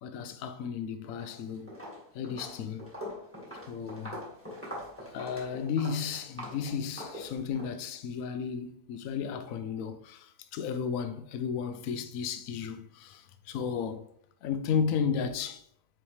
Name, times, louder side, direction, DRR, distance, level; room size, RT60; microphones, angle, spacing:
voice 1, 0.0-1.8 2.1-2.9 3.7-4.2 5.1-14.1 14.4-15.6, left 6 dB, 65° left, 1.0 m, -34 dB
Walk footsteps, 1.0-1.4 1.7-7.7, equal, 10° right, 1.6 m, -43 dB
7.7 x 4.4 x 3.3 m
omnidirectional pair, 1.7 m